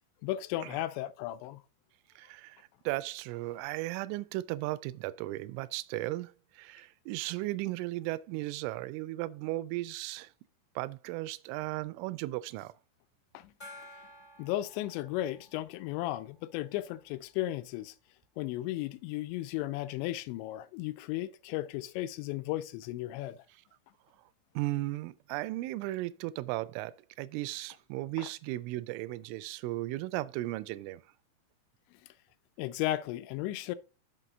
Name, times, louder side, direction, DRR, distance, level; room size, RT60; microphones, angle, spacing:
voice 1, 0.2-1.6 13.3-13.5 14.4-17.9 18.4-23.4 28.2-28.3 32.6-33.8, left 15 dB, 85° left, 2.6 m, -35 dB
voice 2, 2.2-2.6 2.9-10.3 10.8-12.7 24.6-31.0, right 17 dB, 85° right, 3.0 m, -36 dB
Gong, 13.6-16.9, left 1 dB, 30° left, 0.9 m, -53 dB
7.5 x 6.0 x 3.9 m
omnidirectional pair, 5.5 m